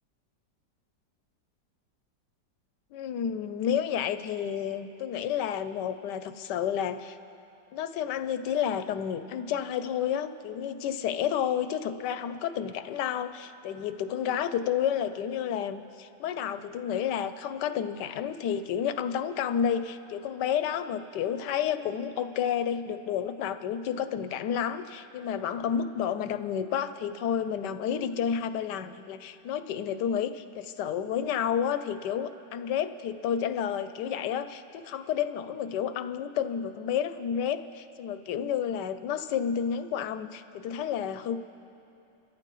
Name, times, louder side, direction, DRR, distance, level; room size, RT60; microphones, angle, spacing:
voice 1, 2.9-7.2 7.7-41.4, left 8 dB, 75° left, 11 dB, 1.1 m, -30 dB
29.5 x 13.5 x 3.0 m, 2.7 s
omnidirectional pair, 2.0 m